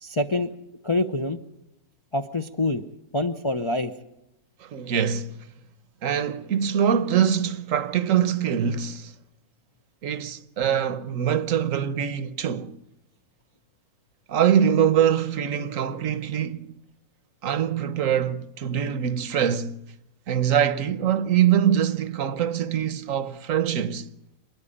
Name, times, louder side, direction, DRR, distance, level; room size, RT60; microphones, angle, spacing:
voice 1, 0.0-0.5 0.8-1.4 2.1-2.8 3.1-3.9, left 2 dB, 30° left, 0.6 m, -25 dB
voice 2, 4.6-5.3 6.0-9.1 10.0-12.7 14.3-16.7 17.4-19.8 20.3-24.1, right 9 dB, 65° right, 1.2 m, -23 dB
27.0 x 10.5 x 10.0 m
omnidirectional pair, 1.6 m